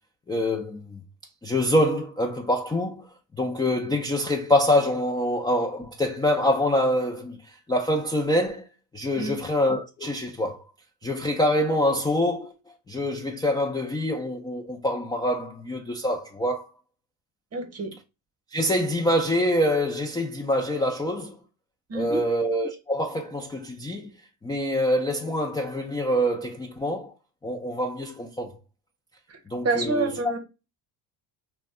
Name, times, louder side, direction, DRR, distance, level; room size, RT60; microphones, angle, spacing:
voice 1, 0.3-1.0 1.4-3.1 3.4-8.7 8.9-10.6 11.0-12.5 12.9-16.7 18.5-21.4 21.9-24.1 24.4-27.1 27.4-28.5 29.5-30.1, left 1 dB, 10° left, 0.3 m, -25 dB
voice 2, 17.5-17.9 21.9-22.2 29.3-29.4 29.6-30.4, right 3 dB, 35° right, 0.9 m, -27 dB
2.5 x 2.2 x 3.5 m
supercardioid pair, 80°, 46 cm